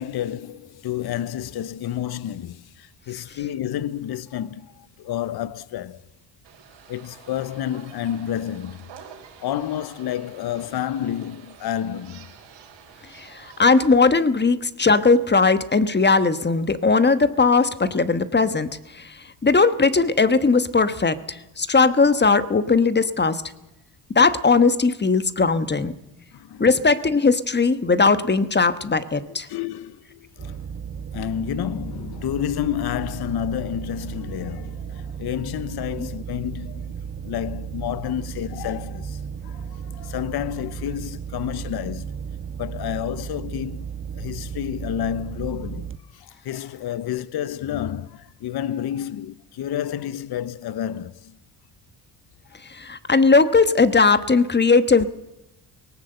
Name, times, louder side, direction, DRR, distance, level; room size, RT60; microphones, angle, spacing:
voice 1, 0.0-6.0 6.9-8.9 9.4-12.3 26.3-26.7 29.3-30.6 31.1-36.9 37.2-42.2 42.6-43.9 44.1-51.4 55.0-55.1, left 10 dB, 55° left, 0.8 m, -30 dB
sound 1, 6.4-14.1, right 8 dB, 75° right, 4.6 m, -48 dB
voice 2, 13.1-18.7 18.9-19.1 19.4-23.4 24.1-25.9 26.6-29.5 36.0-36.1 52.7-55.0, left 4 dB, 20° left, 1.3 m, -18 dB
sound 2, 30.4-46.0, right 7 dB, 25° right, 1.2 m, -34 dB
19.0 x 18.0 x 7.9 m
supercardioid pair, 75°, 46 cm